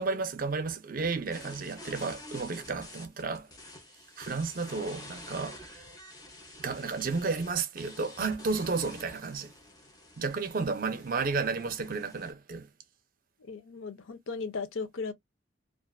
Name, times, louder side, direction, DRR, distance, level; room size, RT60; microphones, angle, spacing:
voice 1, 0.0-3.5 4.2-5.8 6.6-9.5 10.2-12.7, right 4 dB, 45° right, 0.5 m, -32 dB
sound 1, 1.3-12.3, left 1 dB, 20° left, 0.7 m, -49 dB
voice 2, 13.5-15.1, left 4 dB, 75° left, 0.5 m, -36 dB
2.5 x 2.4 x 2.2 m
head